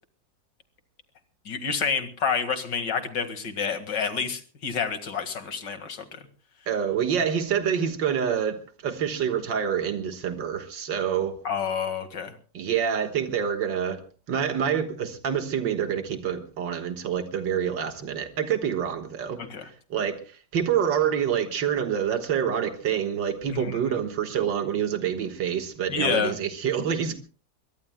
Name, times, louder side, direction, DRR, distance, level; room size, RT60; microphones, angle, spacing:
voice 1, 1.5-6.2 11.4-12.3 19.4-19.7 23.5-23.8 25.9-26.3, left 6 dB, 70° left, 2.5 m, -28 dB
voice 2, 6.7-11.3 12.5-14.0 14.3-19.4 19.7-27.2, right 8 dB, 90° right, 2.1 m, -27 dB
23.0 x 22.0 x 2.2 m
omnidirectional pair, 1.9 m